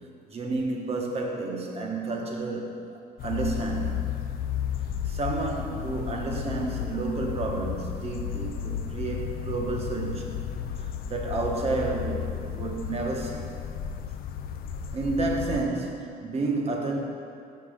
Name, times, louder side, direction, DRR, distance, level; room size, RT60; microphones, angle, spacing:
voice 1, 0.3-4.1 5.0-10.4 10.8-13.5 14.9-17.0, right 3 dB, 35° right, 1 dB, 1.1 m, -30 dB
sound 1, 3.2-15.7, left 8 dB, 60° left, 0.4 m, -33 dB
5.9 x 5.8 x 5.1 m, 2.4 s
cardioid pair, 110°, 17 cm